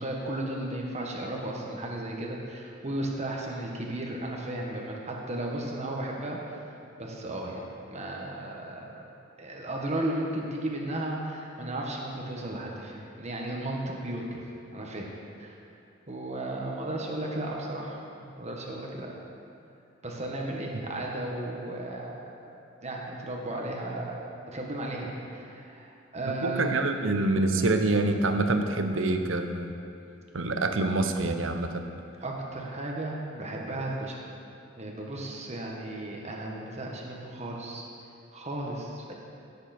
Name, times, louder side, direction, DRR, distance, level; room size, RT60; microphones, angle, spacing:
voice 1, 0.0-6.4 7.0-9.0 9.4-14.4 14.7-15.1 15.4-15.5 16.1-19.1 20.0-22.2 22.4-27.1 32.2-34.2 34.8-37.8 38.3-39.1, right 1 dB, 35° right, -1 dB, 1.6 m, -34 dB
voice 2, 26.4-29.7 30.3-31.9, right 2 dB, 70° right, 6 dB, 0.9 m, -26 dB
17.0 x 7.8 x 4.4 m, 2.5 s
head